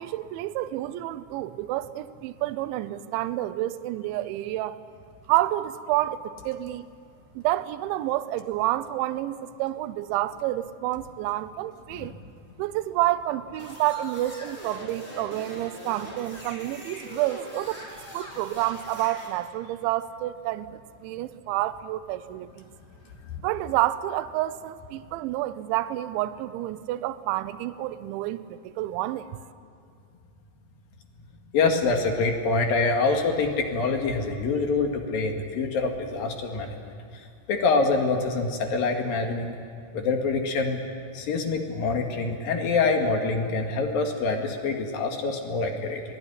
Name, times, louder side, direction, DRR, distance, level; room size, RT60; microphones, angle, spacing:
voice 1, 0.0-4.8 5.3-6.9 7.4-12.1 12.6-17.9 18.1-22.7 23.4-29.3, right 15 dB, 80° right, 12 dB, 3.0 m, -29 dB
sound 1, 13.5-19.3, equal, 15° left, 5.1 m, -42 dB
voice 2, 31.5-36.9 37.5-39.5 39.9-40.8 41.1-46.0, left 4 dB, 55° left, 3 dB, 3.4 m, -25 dB
25.5 x 19.5 x 9.9 m, 2.4 s
omnidirectional pair, 5.5 m